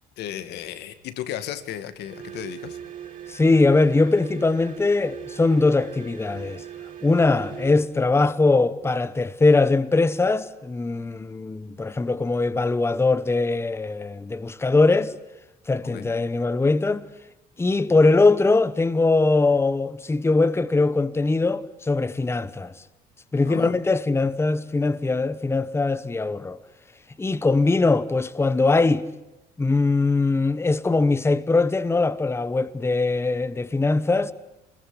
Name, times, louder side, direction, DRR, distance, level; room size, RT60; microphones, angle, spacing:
voice 1, 0.2-2.8 15.8-16.1 23.5-23.8, left 11 dB, 80° left, 2.2 m, -34 dB
sound 1, 2.0-8.0, right 9 dB, 50° right, 6.1 m, -40 dB
voice 2, 3.3-6.6 7.0-15.1 15.7-17.0 17.6-22.7 23.3-26.6 27.2-29.1 29.6-34.3, left 3 dB, 15° left, 1.1 m, -21 dB
26.0 x 21.5 x 10.0 m
cardioid pair, 110°, 17 cm